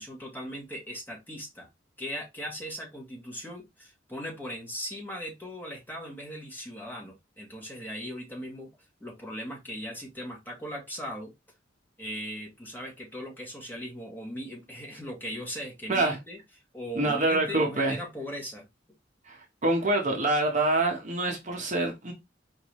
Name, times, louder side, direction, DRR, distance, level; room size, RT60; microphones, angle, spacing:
voice 1, 0.0-1.7 2.0-8.7 9.0-11.3 12.0-16.4 16.7-18.7, equal, 10° left, 2.0 m, -39 dB
voice 2, 16.9-18.0 19.2-22.1, right 2 dB, 40° right, 1.1 m, -26 dB
4.6 x 3.6 x 3.1 m
head